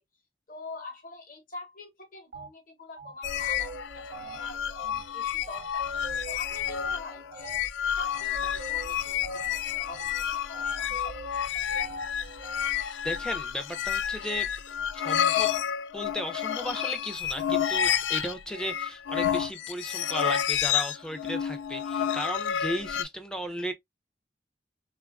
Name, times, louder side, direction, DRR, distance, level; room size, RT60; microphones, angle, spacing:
voice 1, 0.5-6.0 6.3-7.6 7.9-11.2, left 3 dB, 50° left, 1.0 m, -45 dB
sound 1, 2.3-2.5 3.0-12.7, right 3 dB, 55° right, 0.5 m, -44 dB
sound 2, 3.2-23.0, left 9 dB, 80° left, 0.3 m, -30 dB
voice 2, 13.0-14.5 14.9-15.5 15.9-23.7, equal, 5° left, 0.4 m, -35 dB
3.7 x 2.4 x 2.2 m
head